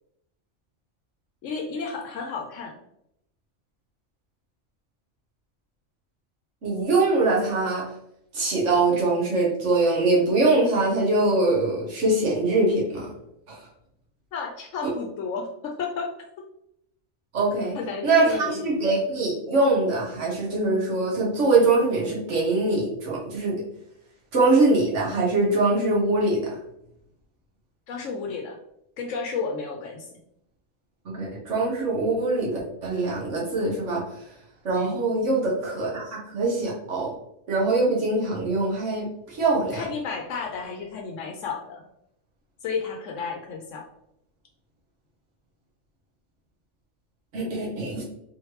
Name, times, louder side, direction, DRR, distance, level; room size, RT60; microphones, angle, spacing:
voice 1, 1.4-2.7 14.3-16.1 17.8-18.6 27.9-28.6 29.0-30.1 34.8-34.9 39.7-41.8 42.6-43.8, left 5 dB, 75° left, 1 dB, 0.9 m, -32 dB
voice 2, 6.6-7.8 8.3-13.1 13.5-13.7 14.8-14.9 17.3-17.7 18.0-23.6 24.3-26.6 31.0-34.3 34.6-37.1 37.5-39.8 47.3-48.0, right 2 dB, 70° right, -4 dB, 1.6 m, -23 dB
4.2 x 3.2 x 3.1 m, 0.78 s
omnidirectional pair, 1.3 m